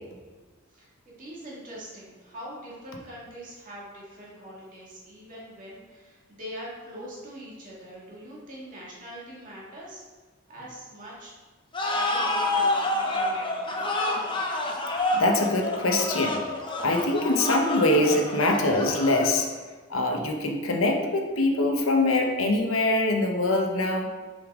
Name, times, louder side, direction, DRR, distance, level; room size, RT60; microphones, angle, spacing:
voice 1, 1.2-10.0 10.5-11.3 11.9-14.5, equal, 40° right, -6 dB, 2.1 m, -42 dB
sound 1, 11.7-19.6, left 2 dB, 25° left, 0.8 m, -28 dB
voice 2, 15.1-16.4 16.8-19.5 19.9-24.1, left 2 dB, 80° left, 3 dB, 0.9 m, -23 dB
6.5 x 5.2 x 3.7 m, 1.3 s
head